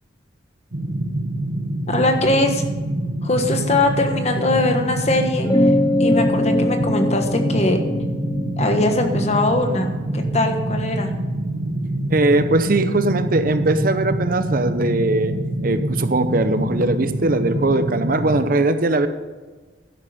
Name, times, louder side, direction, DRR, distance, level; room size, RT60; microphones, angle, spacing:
sound 1, 0.7-18.4, right 1 dB, 85° right, 1.4 m, -26 dB
voice 1, 1.9-2.6 3.2-5.7 6.0-7.8 8.6-9.9 10.1-11.1, left 2 dB, 35° left, 5 dB, 1.3 m, -21 dB
sound 2, 5.4-10.3, left 1 dB, 20° left, 0.5 m, -22 dB
voice 2, 12.1-15.4 15.6-19.1, right 2 dB, 50° right, 10 dB, 0.7 m, -20 dB
12.0 x 10.5 x 4.3 m, 1.3 s
head